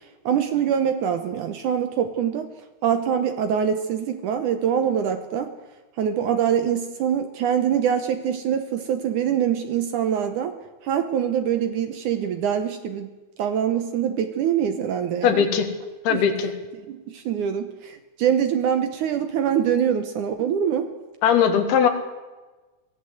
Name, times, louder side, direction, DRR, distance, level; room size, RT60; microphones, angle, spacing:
voice 1, 0.3-2.5 2.8-5.5 6.0-10.5 10.8-13.1 13.4-15.5 16.1-16.2 16.9-20.9, right 8 dB, 70° right, 8 dB, 2.1 m, -24 dB
voice 2, 15.2-15.7 16.0-16.5 21.2-21.9, left 8 dB, 80° left, 6 dB, 3.7 m, -19 dB
23.0 x 15.5 x 7.9 m, 1.2 s
omnidirectional pair, 4.4 m